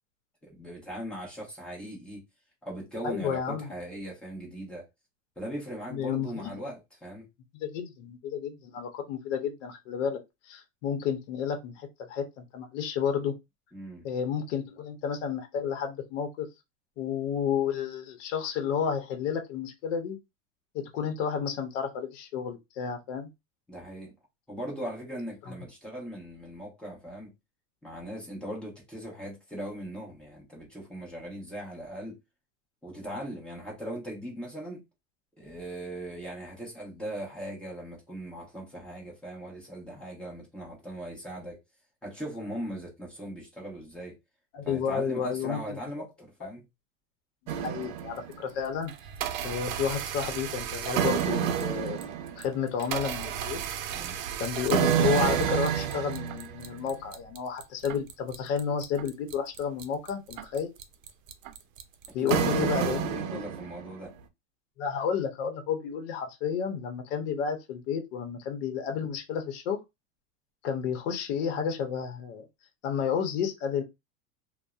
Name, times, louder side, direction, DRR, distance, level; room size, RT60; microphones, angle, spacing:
voice 1, 0.4-2.2 2.6-4.9 5.4-7.3 13.7-14.1 23.7-24.1 24.5-27.3 27.8-32.2 32.8-34.8 35.4-41.6 42.0-44.2 44.6-46.6 53.9-54.2 62.2-64.1, right 1 dB, 5° left, 0.8 m, -39 dB
voice 2, 3.0-3.7 5.9-6.5 7.5-10.2 10.4-13.3 14.0-16.5 17.0-20.2 20.7-23.3 25.5-25.6 44.5-46.1 46.4-46.5 47.6-48.9 49.4-52.0 52.4-53.6 54.4-60.7 62.1-63.4 64.8-69.8 70.6-72.4 72.8-73.8, left 7 dB, 65° left, 0.8 m, -31 dB
sound 1, 47.5-48.4 48.9-63.9, right 9 dB, 75° right, 0.6 m, -30 dB
2.6 x 2.1 x 2.3 m
supercardioid pair, 145°, 39 cm